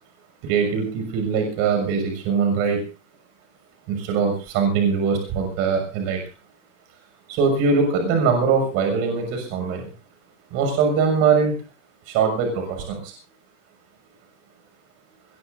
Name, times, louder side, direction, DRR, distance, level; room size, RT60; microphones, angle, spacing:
voice 1, 0.4-2.8 3.9-6.2 7.3-9.8 10.5-11.5 12.1-13.1, right 5 dB, 40° right, 4 dB, 6.6 m, -22 dB
22.5 x 21.0 x 2.7 m, 0.34 s
supercardioid pair, 145°, 37 cm